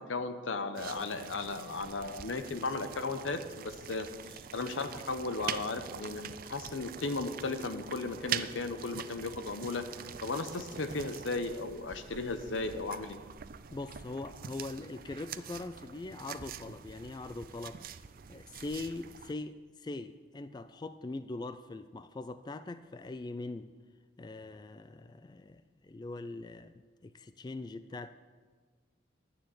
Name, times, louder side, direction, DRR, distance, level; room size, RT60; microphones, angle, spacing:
voice 1, 0.0-6.2 6.5-9.8 10.2-13.2, left 3 dB, 90° left, 9 dB, 0.9 m, -36 dB
sound 1, 0.7-19.3, right 8 dB, 50° right, 0.4 m, -44 dB
voice 2, 13.7-17.8 18.3-23.7 24.2-28.1, left 2 dB, 20° left, 12 dB, 0.3 m, -42 dB
11.5 x 6.9 x 7.8 m, 1.5 s
head